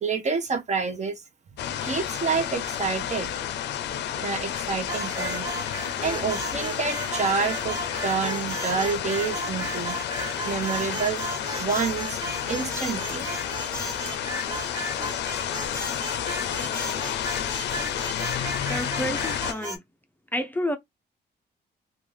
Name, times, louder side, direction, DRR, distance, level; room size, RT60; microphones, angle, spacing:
voice 1, 0.0-1.2 1.8-3.3 4.1-10.0 10.4-11.2 11.6-12.2 12.5-13.3, right 5 dB, 40° right, 0.6 m, -28 dB
sound 1, 1.6-19.5, left 10 dB, 85° left, 0.4 m, -31 dB
sound 2, 4.9-19.8, right 1 dB, 20° right, 1.3 m, -35 dB
voice 2, 18.7-19.8 20.3-20.8, left 1 dB, 10° left, 0.4 m, -29 dB
2.5 x 2.3 x 3.1 m
cardioid pair, 105°, 17 cm